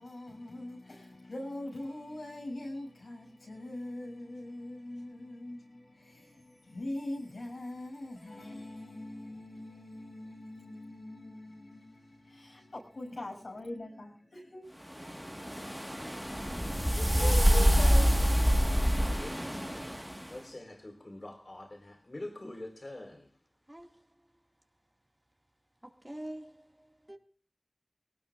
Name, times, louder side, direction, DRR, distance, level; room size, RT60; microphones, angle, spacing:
voice 1, 0.0-14.7 17.2-18.1, left 1 dB, 85° left, 7.0 m, -42 dB
sound 1, 15.0-20.3, equal, 5° right, 1.7 m, -26 dB
voice 2, 17.0-17.9 23.7-23.9 26.0-26.6 27.1-27.2, right 1 dB, 20° right, 2.3 m, -42 dB
voice 3, 19.1-19.9 20.3-23.2, left 1 dB, 50° left, 4.7 m, -45 dB
22.5 x 18.5 x 2.6 m
wide cardioid pair, 45°, 0 cm